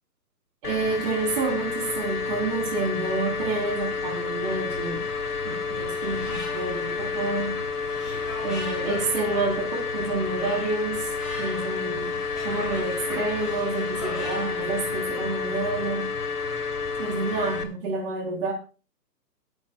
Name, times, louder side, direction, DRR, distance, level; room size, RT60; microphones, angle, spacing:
sound 1, 0.6-17.6, left 5 dB, 65° left, 2.6 m, -30 dB
voice 1, 0.6-5.1 5.4-7.5 8.4-11.1 11.4-12.1 12.4-16.1 17.0-18.5, right 3 dB, 30° right, 2 dB, 3.8 m, -29 dB
sound 2, 5.7-15.0, left 1 dB, ahead, 7.6 m, -41 dB
21.5 x 11.5 x 2.3 m, 0.34 s
figure-of-eight pair, 135°, 50 cm